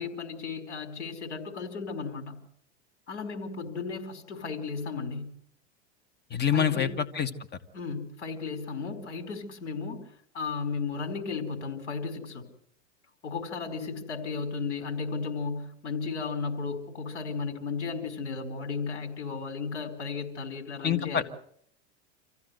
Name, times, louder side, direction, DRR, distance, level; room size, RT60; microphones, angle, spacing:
voice 1, 0.0-2.4 3.1-5.3 6.5-7.0 7.7-12.5 13.2-21.2, left 5 dB, 80° left, 6 dB, 4.8 m, -35 dB
voice 2, 6.3-7.3 20.8-21.2, left 8 dB, 30° left, 11 dB, 1.8 m, -26 dB
26.0 x 15.0 x 8.0 m, 0.68 s
hypercardioid pair, 100°, 35 cm